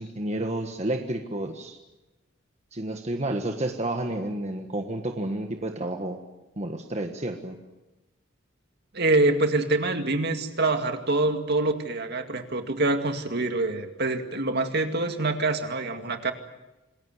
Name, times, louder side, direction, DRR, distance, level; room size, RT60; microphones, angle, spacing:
voice 1, 0.0-1.8 2.7-6.2 6.6-7.6, right 1 dB, 35° right, 4 dB, 1.5 m, -30 dB
voice 2, 8.9-16.3, right 2 dB, 55° right, 6 dB, 2.2 m, -25 dB
27.0 x 20.5 x 8.0 m, 1.0 s
head